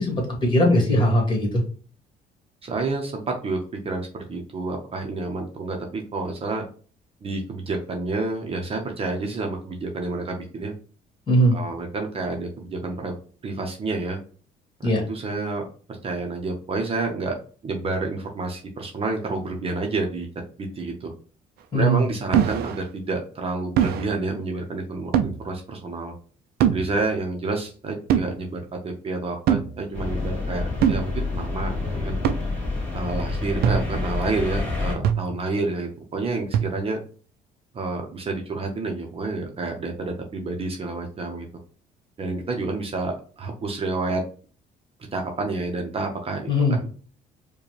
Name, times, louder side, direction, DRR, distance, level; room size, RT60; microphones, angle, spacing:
voice 1, 0.0-1.5 11.3-11.5 14.8-15.0 21.7-22.0 46.5-46.8, equal, 30° left, 0 dB, 2.0 m, -19 dB
voice 2, 2.6-3.6 3.8-6.6 7.2-10.7 11.5-13.1 13.4-14.2 14.8-15.6 16.0-17.3 17.6-20.3 20.6-21.1 21.7-26.1 26.7-32.2 32.9-37.0 37.7-41.5 42.2-44.2 45.1-46.9, right 3 dB, 35° right, 2 dB, 0.8 m, -29 dB
sound 1, 22.3-22.8 23.8-24.1 25.1-25.4 26.6-26.9 28.1-28.3 29.5-29.7 30.8-31.1 32.2-32.4 33.6-34.0 35.0-35.4 36.5-36.9, right 9 dB, 70° right, 0.5 m, -22 dB
sound 2, 29.9-35.0, left 3 dB, 10° left, 2.0 m, -28 dB
4.7 x 2.3 x 3.2 m, 0.41 s
cardioid pair, 110°, 17 cm